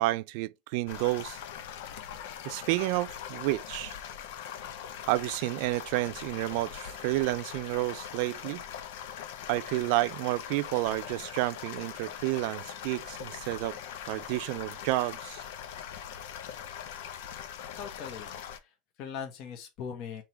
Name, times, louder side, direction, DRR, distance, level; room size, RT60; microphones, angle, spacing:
voice 1, 0.0-1.4 2.4-4.0 5.1-8.6 9.5-13.8 14.0-15.4, right 19 dB, 65° right, 0.3 m, -30 dB
sound 1, 0.9-18.6, left 9 dB, 80° left, 0.7 m, -42 dB
voice 2, 17.8-18.3 18.6-20.2, left 7 dB, 50° left, 1.2 m, -40 dB
3.6 x 3.0 x 4.4 m
supercardioid pair, 145°, 0 cm